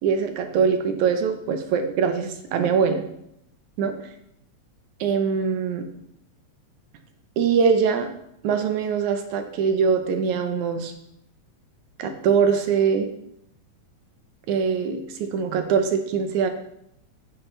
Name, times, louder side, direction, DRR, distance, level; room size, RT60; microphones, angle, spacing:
voice 1, 0.0-3.0 3.8-4.0 5.0-5.9 7.4-8.1 8.4-10.9 12.0-13.1 14.5-16.5, right 6 dB, 85° right, 6 dB, 2.3 m, -22 dB
10.0 x 8.9 x 3.3 m, 0.76 s
omnidirectional pair, 3.3 m